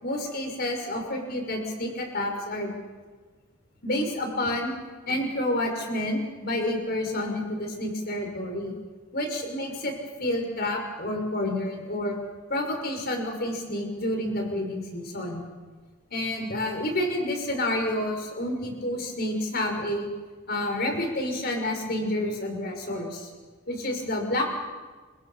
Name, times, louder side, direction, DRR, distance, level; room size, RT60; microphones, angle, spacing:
voice 1, 0.0-2.8 3.8-4.7 5.1-8.8 9.1-9.9 10.2-12.2 12.5-15.4 16.1-20.1 20.5-23.3 23.7-24.5, left 1 dB, 45° left, 3 dB, 5.7 m, -29 dB
29.5 x 26.5 x 5.7 m, 1.4 s
head